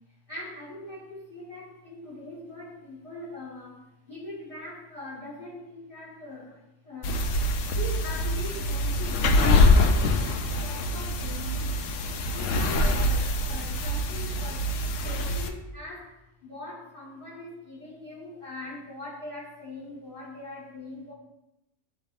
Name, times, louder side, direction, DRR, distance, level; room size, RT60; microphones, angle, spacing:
voice 1, 0.3-7.2 7.7-11.8 12.3-21.1, left 2 dB, 25° left, -7 dB, 2.9 m, -41 dB
sound 1, 7.0-15.5, left 1 dB, 85° left, 1.0 m, -24 dB
8.9 x 3.6 x 4.1 m, 0.89 s
omnidirectional pair, 1.3 m